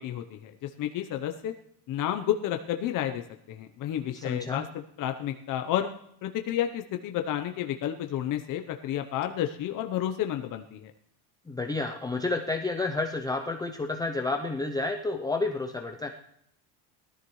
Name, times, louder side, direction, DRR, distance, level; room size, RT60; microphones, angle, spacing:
voice 1, 0.0-1.5 1.9-5.9 6.2-10.9, left 11 dB, 45° left, 5 dB, 0.8 m, -31 dB
voice 2, 4.1-4.6 11.5-16.1, left 3 dB, 10° left, 4 dB, 0.5 m, -30 dB
19.0 x 13.0 x 3.1 m, 0.72 s
cardioid pair, 145°, 45 cm